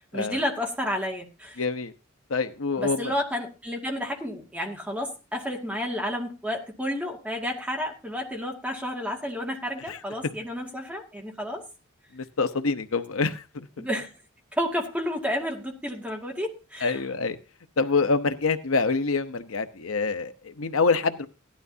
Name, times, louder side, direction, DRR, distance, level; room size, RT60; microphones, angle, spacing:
voice 1, 0.0-1.6 2.8-11.6 13.8-14.1 14.5-17.0, equal, 5° right, 2.2 m, -31 dB
voice 2, 1.6-1.9 2.3-3.1 9.9-10.0 12.1-13.9 16.8-17.4 17.8-21.3, left 4 dB, 85° left, 0.9 m, -26 dB
16.5 x 11.5 x 2.8 m
head